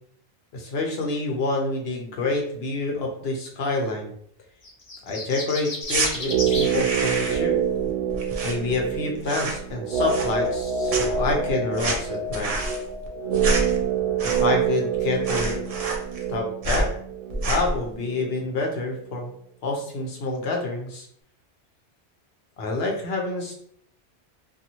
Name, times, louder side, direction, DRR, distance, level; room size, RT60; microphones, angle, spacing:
voice 1, 0.5-4.1 5.1-7.6 8.4-12.5 14.2-15.6 16.3-16.9 17.3-19.3 19.6-21.1 22.6-23.5, left 3 dB, 65° left, 1 dB, 0.9 m, -27 dB
sound 1, 4.6-6.7, left 2 dB, 40° left, 0.4 m, -33 dB
sound 2, 5.8-6.1 6.5-7.5 7.8-9.0 9.2-9.7 10.0-10.6 10.9-14.7 14.9-15.0 15.2-16.3 16.6-16.9 17.3-17.8, right 2 dB, 45° right, 0.5 m, -28 dB
sound 3, 6.2-18.3 18.6-18.7, right 7 dB, 85° right, 0.9 m, -26 dB
2.6 x 2.6 x 2.8 m, 0.65 s
omnidirectional pair, 1.2 m